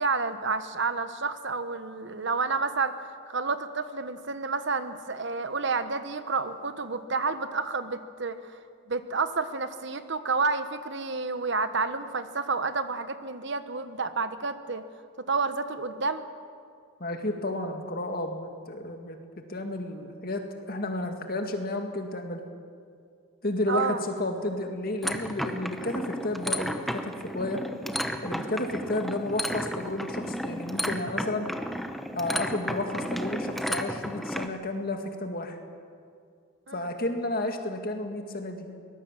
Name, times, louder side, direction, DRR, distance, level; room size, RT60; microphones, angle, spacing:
voice 1, 0.0-8.6 8.9-14.8 15.3-16.2 23.7-24.0 36.7-36.9, right 4 dB, 55° right, 11 dB, 1.1 m, -30 dB
voice 2, 17.0-19.2 19.5-22.4 23.4-27.6 28.2-31.5 32.2-35.6 36.7-38.7, left 1 dB, 45° left, 5 dB, 2.0 m, -32 dB
sound 1, 25.0-34.5, equal, ahead, 0.8 m, -33 dB
23.5 x 20.0 x 7.5 m, 2.2 s
head